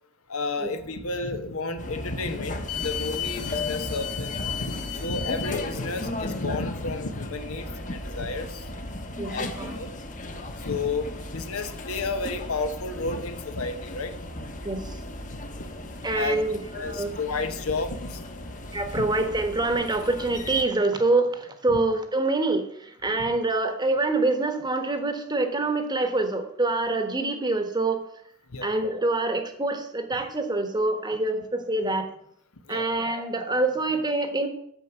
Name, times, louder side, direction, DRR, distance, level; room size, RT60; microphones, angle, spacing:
voice 1, 0.3-8.6 9.3-9.9 10.6-14.1 15.3-15.4 16.1-16.4 16.7-18.2 18.8-19.1 21.7-21.8 23.2-23.3 28.5-28.7 32.7-32.9, left 3 dB, 70° left, 8 dB, 1.2 m, -32 dB
sound 1, 1.8-20.6, left 3 dB, 35° left, 1.1 m, -35 dB
voice 2, 9.2-9.8 14.6-14.8 16.0-17.1 18.7-22.7 23.0-28.0 28.6-32.1 32.7-34.5, right 2 dB, 20° right, 7 dB, 1.2 m, -25 dB
8.9 x 6.7 x 8.0 m, 0.69 s
head